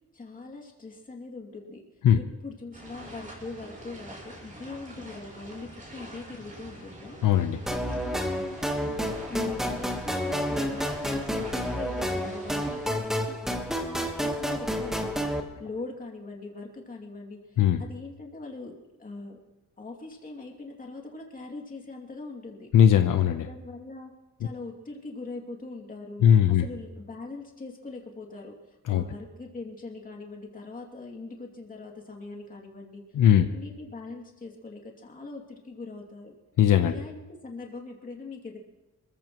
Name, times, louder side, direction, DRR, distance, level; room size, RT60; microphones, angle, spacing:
voice 1, 0.1-1.8 2.1-7.2 7.7-15.3 15.6-19.4 19.8-22.7 23.5-24.1 24.4-33.0 33.3-36.3 36.8-38.6, left 3 dB, 25° left, 0 dB, 2.6 m, -41 dB
sound 1, 2.7-12.9, right 1 dB, 25° right, 4.9 m, -45 dB
voice 2, 7.2-7.6 17.6-17.8 22.7-23.5 26.2-26.6 28.9-29.0 33.1-33.5 36.6-37.0, left 9 dB, 80° left, 8 dB, 0.9 m, -19 dB
sound 2, 7.7-15.4, equal, ahead, 1.4 m, -30 dB
27.0 x 15.0 x 3.1 m, 1.1 s
wide cardioid pair, 165°, 31 cm